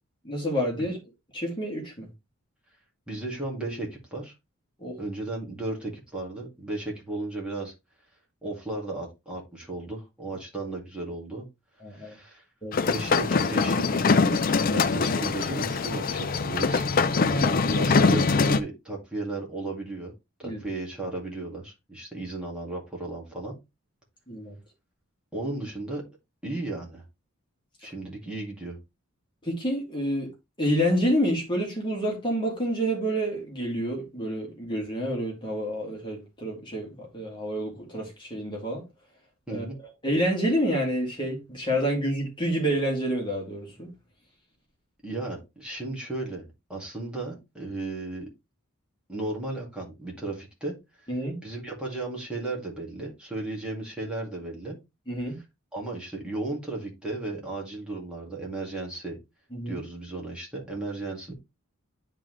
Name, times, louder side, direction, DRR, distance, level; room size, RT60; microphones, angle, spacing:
voice 1, 0.3-1.0 1.3-2.1 4.8-5.0 11.8-12.2 12.6-12.9 17.3-17.7 20.4-20.6 24.3-24.6 29.4-30.3 30.6-38.8 39.5-39.6 40.0-43.9 51.1-51.4 55.1-55.4 59.5-59.8, equal, 20° left, 2.2 m, -28 dB
voice 2, 3.1-4.3 5.0-7.7 8.4-11.5 11.9-12.4 12.9-16.9 17.6-20.1 20.4-23.5 25.3-26.0 26.4-27.0 27.8-28.8 39.5-39.8 45.0-46.4 46.7-48.3 49.1-51.1 51.4-54.8 55.7-59.2 59.7-61.3, right 2 dB, 5° right, 2.1 m, -35 dB
sound 1, 12.7-18.6, left 4 dB, 40° left, 0.4 m, -23 dB
10.0 x 3.8 x 3.1 m
head